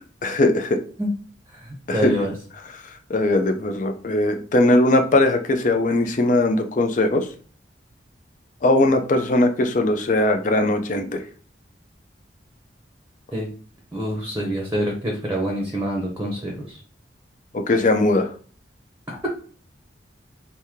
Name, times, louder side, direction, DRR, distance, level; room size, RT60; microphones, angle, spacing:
voice 1, 0.2-0.8 1.9-2.1 3.1-7.2 8.6-11.2 17.7-18.3, left 2 dB, 45° left, 6 dB, 0.5 m, -19 dB
voice 2, 1.5-2.3 13.3-13.5 13.9-16.8, equal, 15° right, -1 dB, 0.7 m, -26 dB
3.0 x 2.7 x 3.6 m, 0.42 s
head